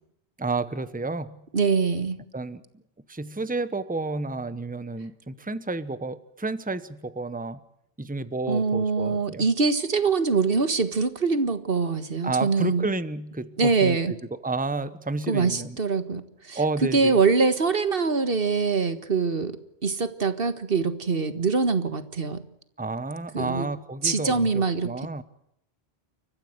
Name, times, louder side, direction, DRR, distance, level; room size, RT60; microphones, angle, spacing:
voice 1, 0.4-1.4 2.3-2.6 3.1-7.6 8.0-9.5 12.2-15.8 16.5-17.2 22.8-25.2, right 3 dB, 10° right, 14 dB, 1.0 m, -31 dB
voice 2, 1.5-2.2 8.5-12.8 13.6-14.1 15.3-16.6 16.9-22.4 23.3-23.7 24.0-24.9, right 4 dB, 60° right, 12 dB, 1.8 m, -24 dB
29.5 x 14.5 x 7.9 m, 0.77 s
omnidirectional pair, 1.1 m